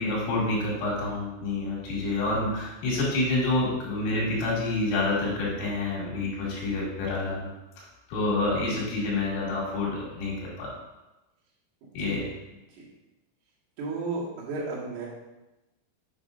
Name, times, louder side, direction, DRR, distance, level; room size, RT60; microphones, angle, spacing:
voice 1, 0.0-7.5 7.8-10.7 11.9-12.2, left 2 dB, 85° left, -5 dB, 4.8 m, -28 dB
voice 2, 11.8-12.1 13.8-15.1, right 3 dB, 80° right, -6 dB, 4.4 m, -33 dB
8.6 x 7.4 x 2.6 m, 1.0 s
omnidirectional pair, 5.6 m